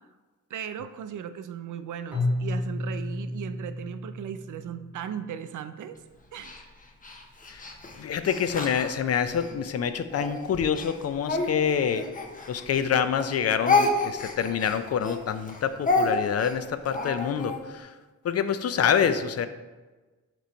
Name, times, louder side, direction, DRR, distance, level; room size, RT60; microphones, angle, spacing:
voice 1, 0.5-6.0 6.3-6.6, right 8 dB, 80° right, 10 dB, 0.5 m, -37 dB
Keyboard (musical), 2.1-5.1, left 2 dB, 5° right, 1.4 m, -31 dB
Speech, 6.4-9.5 10.1-12.9 13.2-17.6, left 3 dB, 25° left, 0.8 m, -29 dB
voice 2, 8.0-12.1 12.5-17.9 18.2-19.5, left 7 dB, 55° left, 11 dB, 0.4 m, -26 dB
6.9 x 3.0 x 5.1 m, 1.2 s
wide cardioid pair, 120°, 30 cm